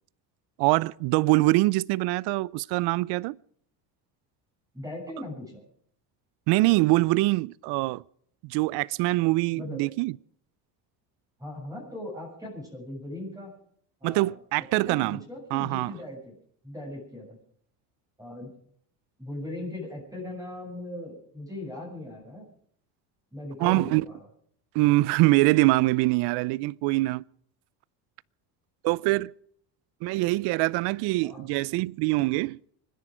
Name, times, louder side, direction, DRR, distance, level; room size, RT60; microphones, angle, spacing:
voice 1, 0.6-3.4 6.5-8.0 8.4-10.2 14.0-15.2 15.5-15.9 23.6-24.0 24.7-27.2 28.8-29.3 30.0-32.6, right 21 dB, 70° right, 0.5 m, -24 dB
voice 2, 4.7-5.6 9.6-9.8 11.4-13.5 14.0-16.4 16.6-17.4 18.2-18.5 19.2-22.5 23.3-24.2 31.2-31.5, left 1 dB, 10° right, 7.0 m, -39 dB
25.5 x 10.5 x 5.0 m
cardioid pair, 110°, 41 cm